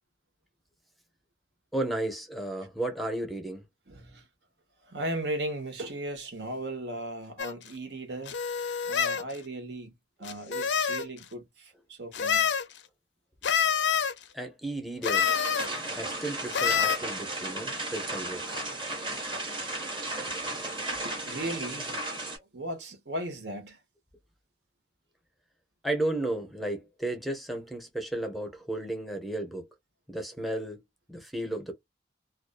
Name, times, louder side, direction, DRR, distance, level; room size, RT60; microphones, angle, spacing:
voice 1, 1.7-3.6 14.3-15.3 15.9-18.6 25.8-29.7 30.1-30.8 31.1-31.7, right 1 dB, ahead, 0.6 m, -33 dB
voice 2, 3.9-4.2 4.9-8.4 8.8-9.9 10.2-12.5 21.0-21.9 22.3-23.8, right 1 dB, 75° right, 0.9 m, -37 dB
sound 1, 7.4-7.5 8.3-9.2 10.2-11.1 12.1-12.6 13.4-14.1 15.0-15.7 16.5-17.0, left 7 dB, 85° left, 0.5 m, -26 dB
sound 2, 15.1-22.4, right 2 dB, 25° right, 1.1 m, -35 dB
2.5 x 2.3 x 2.2 m
head